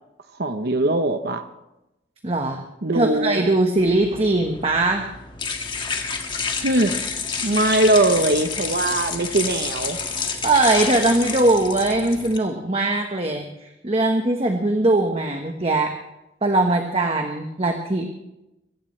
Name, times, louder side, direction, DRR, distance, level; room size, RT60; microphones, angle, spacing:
voice 1, 0.4-1.4 2.8-3.4 6.6-7.0 7.4-10.0, right 2 dB, 60° right, 8 dB, 0.9 m, -21 dB
voice 2, 2.2-2.6 2.9-5.1 10.2-15.9 16.4-18.1, right 2 dB, 30° right, 3 dB, 1.3 m, -21 dB
sound 1, 3.8-12.4, left 5 dB, 25° left, 1.7 m, -29 dB
23.0 x 16.5 x 3.3 m, 0.91 s
head